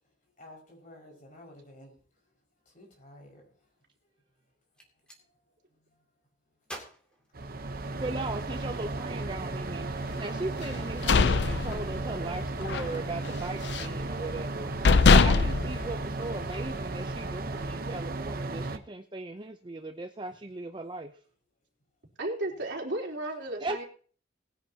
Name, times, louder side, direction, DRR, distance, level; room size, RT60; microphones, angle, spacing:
voice 1, 0.4-2.3 2.6-3.7 4.1-4.2 5.2-5.3 5.7-6.1 22.5-22.7, left 1 dB, 45° left, 0 dB, 5.5 m, -53 dB
Gunshot gunfire, 4.6-5.2 6.6-8.1, right 1 dB, 5° left, 2.5 m, -47 dB
sound 1, 7.3-18.8, right 2 dB, 50° right, 0.9 m, -35 dB
voice 2, 8.0-14.7 15.1-21.2 23.6-23.8, right 2 dB, 25° right, 7 dB, 0.6 m, -38 dB
sound 2, 10.7-12.3 12.6-12.9 13.2-14.0 14.5-14.6 14.8-16.7, left 4 dB, 65° left, 0.5 m, -22 dB
voice 3, 22.2-23.8, right 1 dB, 70° right, -1 dB, 3.6 m, -34 dB
20.5 x 10.0 x 2.8 m, 0.43 s
head